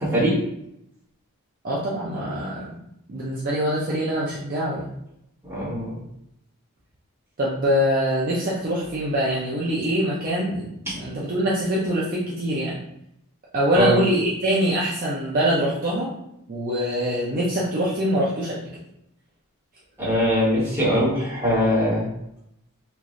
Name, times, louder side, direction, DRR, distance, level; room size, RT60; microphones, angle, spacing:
voice 1, 1.6-2.7 3.1-4.9 7.4-10.7 11.0-12.8 13.5-16.1 16.5-18.7, equal, 40° right, -6 dB, 0.5 m, -24 dB
voice 2, 5.4-5.9 10.9-11.0 13.7-14.0 20.0-22.0, equal, 10° right, -10 dB, 1.3 m, -21 dB
3.0 x 2.4 x 2.4 m, 0.77 s
head